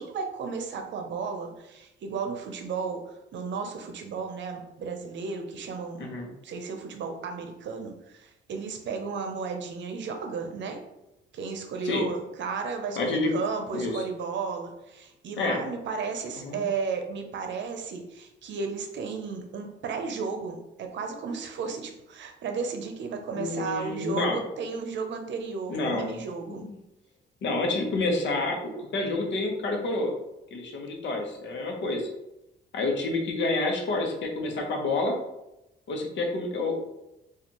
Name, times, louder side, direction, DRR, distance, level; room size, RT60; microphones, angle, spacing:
voice 1, 0.0-6.1 6.4-10.9 11.3-26.7, right 5 dB, 65° right, 5 dB, 0.7 m, -34 dB
voice 2, 6.0-6.3 11.8-12.1 13.0-13.3 13.7-14.0 15.4-15.6 16.4-16.6 23.4-24.4 25.7-26.2 26.5-26.7 27.4-30.2 30.5-32.1 32.7-35.1 35.9-36.8, left 2 dB, 70° left, 2 dB, 0.9 m, -28 dB
4.2 x 2.5 x 2.9 m, 0.90 s
cardioid pair, 90°, 20 cm